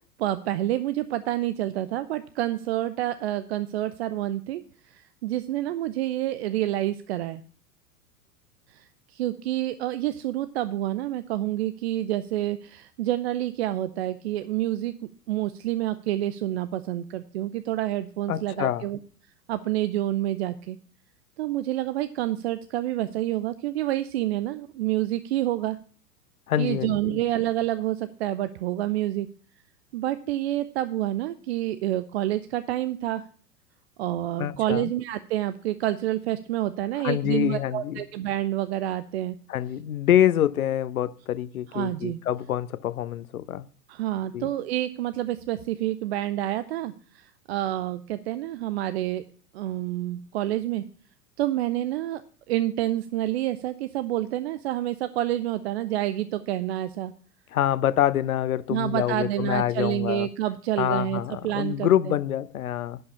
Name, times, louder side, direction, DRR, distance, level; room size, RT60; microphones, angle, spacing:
voice 1, 0.2-7.4 8.7-14.9 15.3-19.0 19.5-20.8 21.4-25.8 26.6-29.3 29.9-33.2 34.0-39.4 41.7-42.2 43.9-49.2 49.5-50.8 51.4-52.2 52.5-57.1 58.7-62.1, right 14 dB, 45° right, 0.6 m, -28 dB
voice 2, 18.3-18.9 26.5-27.2 34.4-34.9 37.0-38.0 39.5-43.7 44.3-44.5 57.5-60.3 60.8-63.0, left 11 dB, 65° left, 0.8 m, -26 dB
11.0 x 5.5 x 8.4 m
figure-of-eight pair, 95°, 47 cm